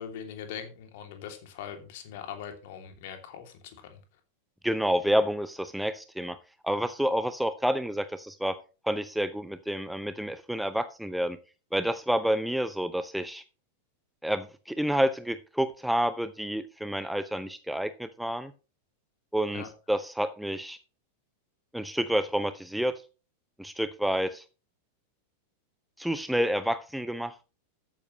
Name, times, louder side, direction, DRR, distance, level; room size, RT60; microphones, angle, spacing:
voice 1, 0.0-4.0 19.5-19.7, left 8 dB, 50° left, 5 dB, 3.0 m, -41 dB
voice 2, 4.6-6.4 6.6-8.6 8.8-11.4 11.7-13.4 14.2-18.5 19.3-20.8 21.7-23.0 23.6-24.4 26.0-27.3, equal, ahead, 13 dB, 0.6 m, -29 dB
13.5 x 9.9 x 3.2 m, 0.35 s
figure-of-eight pair, 90°, 0 cm